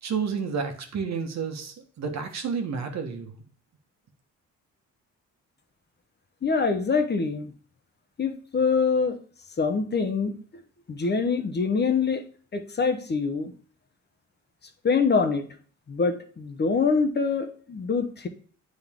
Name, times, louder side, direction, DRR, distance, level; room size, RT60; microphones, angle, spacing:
voice 1, 0.0-3.3, right 6 dB, 60° right, 5 dB, 1.4 m, -30 dB
voice 2, 6.4-7.5 8.2-9.2 9.6-10.3 10.9-12.2 12.5-13.5 14.8-15.5 15.9-18.3, left 5 dB, 35° left, 7 dB, 0.9 m, -24 dB
8.8 x 3.9 x 3.6 m, 0.44 s
cardioid pair, 90°, 30 cm